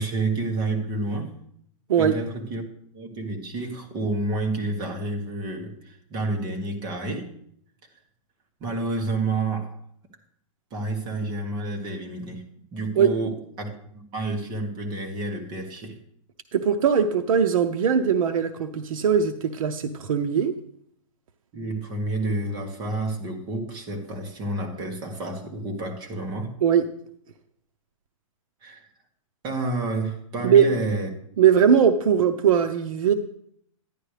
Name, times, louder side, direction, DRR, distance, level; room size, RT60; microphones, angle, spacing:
voice 1, 0.0-1.4 2.0-2.6 2.9-7.3 8.6-9.8 10.7-12.4 12.7-16.0 21.5-26.5 28.6-28.9 29.4-31.1, right 2 dB, 25° right, 3 dB, 1.6 m, -29 dB
voice 2, 16.5-20.5 26.6-26.9 30.4-30.7 31.4-33.1, right 7 dB, 80° right, 7 dB, 0.7 m, -20 dB
11.0 x 9.9 x 3.3 m, 0.69 s
hypercardioid pair, 155°, 17 cm